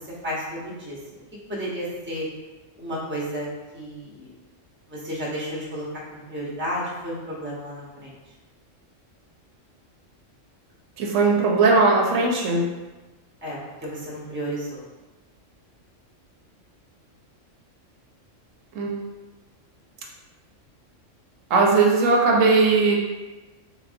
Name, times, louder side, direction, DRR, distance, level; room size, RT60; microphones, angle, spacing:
voice 1, 0.2-1.0 1.5-2.2 2.8-3.5 3.7-4.3 4.9-8.1 13.4-14.8, equal, 10° right, -6 dB, 0.8 m, -32 dB
voice 2, 11.0-12.7 18.7-19.0 21.5-23.0, right 3 dB, 80° right, -1 dB, 1.1 m, -19 dB
4.0 x 3.3 x 2.6 m, 1.2 s
omnidirectional pair, 1.3 m